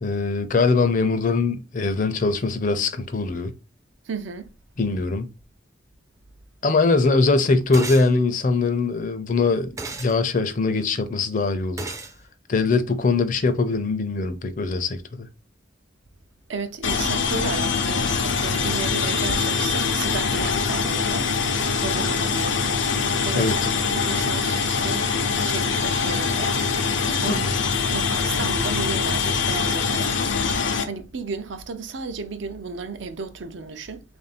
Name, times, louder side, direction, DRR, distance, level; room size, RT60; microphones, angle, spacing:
voice 1, 0.0-3.5 4.8-5.3 6.6-9.7 10.0-11.9 12.5-15.3 23.3-23.6 27.3-27.5, left 3 dB, 45° left, 0.5 m, -22 dB
voice 2, 4.0-4.5 16.5-21.3 21.8-22.6 23.2-23.6 23.9-25.1 25.4-26.6 27.2-27.4 27.9-30.2 30.8-34.0, right 4 dB, 85° right, 0.6 m, -33 dB
sound 1, 7.7-8.1 9.8-10.1 11.8-12.1, right 3 dB, 15° right, 0.3 m, -33 dB
sound 2, 16.8-30.8, left 5 dB, 90° left, 0.6 m, -23 dB
3.3 x 2.6 x 4.1 m
head